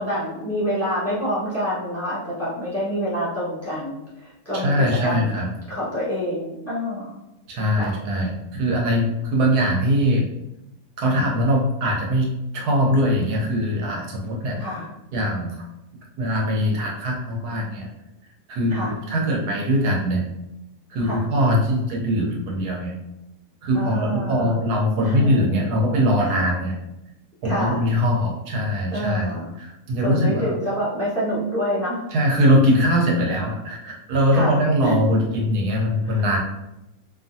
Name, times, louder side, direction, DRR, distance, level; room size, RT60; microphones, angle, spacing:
voice 1, 0.0-5.4 5.7-7.1 7.8-7.9 14.6-14.9 18.7-18.9 21.0-21.2 23.7-24.5 25.0-25.5 26.2-26.4 27.4-27.8 28.9-29.6 30.0-32.0 34.3-35.2 36.1-36.2, equal, 10° left, -10 dB, 0.8 m, -27 dB
voice 2, 4.5-5.5 7.5-10.2 11.0-12.3 12.5-14.6 15.1-15.6 16.2-17.9 18.5-20.2 20.9-22.9 23.6-26.8 27.4-29.3 29.6-30.5 32.1-36.4, equal, 70° right, -1 dB, 1.2 m, -21 dB
2.7 x 2.4 x 2.6 m, 0.91 s
omnidirectional pair, 1.7 m